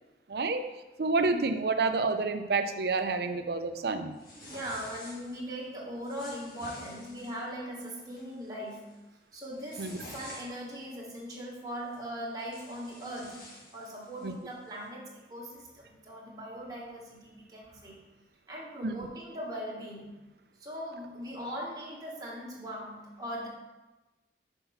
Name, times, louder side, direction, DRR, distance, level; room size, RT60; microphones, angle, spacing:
voice 1, 0.3-0.7 1.0-4.1 9.8-9.9 14.2-14.3 18.8-19.0, right 3 dB, 65° right, 8 dB, 0.5 m, -29 dB
sound 1, 4.2-5.4 6.0-7.4 7.9-8.3 8.7-8.9 9.4-10.7 11.9-12.0 12.4-14.3, left 1 dB, 55° left, 1.7 m, -49 dB
voice 2, 4.3-8.9 9.3-18.1 18.5-20.2 20.6-23.5, equal, 20° right, -4 dB, 1.5 m, -40 dB
5.7 x 4.4 x 5.6 m, 1.1 s
head